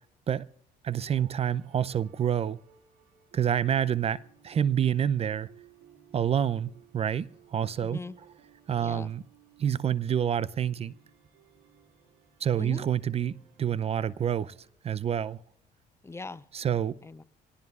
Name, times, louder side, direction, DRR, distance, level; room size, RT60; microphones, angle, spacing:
voice 1, 0.8-2.6 3.3-5.5 6.1-8.0 8.7-9.2 9.6-10.9 12.4-14.5 14.8-15.4 16.5-17.0, right 9 dB, 35° right, 0.5 m, -28 dB
sound 1, 1.4-14.6, right 10 dB, 85° right, 2.1 m, -59 dB
voice 2, 7.8-8.2 8.8-9.1 12.6-12.9 16.0-16.4 17.0-17.2, left 3 dB, 15° left, 0.5 m, -40 dB
26.0 x 18.0 x 2.4 m
cardioid pair, 110°, 17 cm